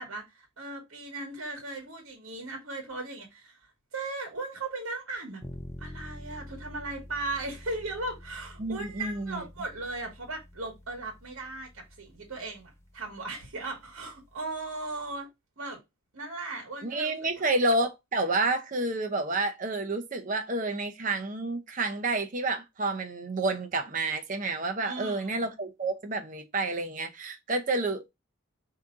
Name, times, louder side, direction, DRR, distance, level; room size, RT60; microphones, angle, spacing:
voice 1, 0.0-3.6 3.9-5.4 5.8-15.3 15.6-15.8 16.1-17.4 24.8-25.5, right 2 dB, 70° right, 1.3 m, -37 dB
sound 1, 5.4-15.2, left 1 dB, 15° left, 0.5 m, -48 dB
voice 2, 8.6-9.5 16.8-28.1, right 2 dB, 35° right, 0.7 m, -29 dB
4.9 x 2.8 x 3.6 m
head